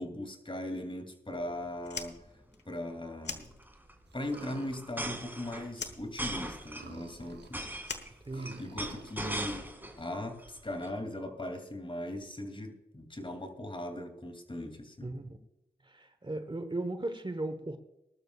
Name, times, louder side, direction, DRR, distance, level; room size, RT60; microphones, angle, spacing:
voice 1, 0.0-2.2 2.6-3.5 4.1-7.7 8.3-9.7 10.0-15.1, left 1 dB, 30° left, 6 dB, 2.7 m, -39 dB
sound 1, 1.4-1.6 1.9-2.0 2.2-2.4 3.4-10.0 10.4-10.9, right 1 dB, 10° right, 2.4 m, -40 dB
Fire, 1.8-4.1 4.4-5.4 5.7-8.9, left 5 dB, 80° left, 1.2 m, -43 dB
sound 2, 4.1-5.6 5.9-6.0 6.5-9.2, right 5 dB, 75° right, 1.0 m, -51 dB
voice 2, 8.3-8.7 15.0-15.4 15.8-17.8, right 2 dB, 30° right, 8 dB, 1.2 m, -37 dB
19.5 x 12.5 x 2.4 m, 0.92 s
cardioid pair, 45°, 18 cm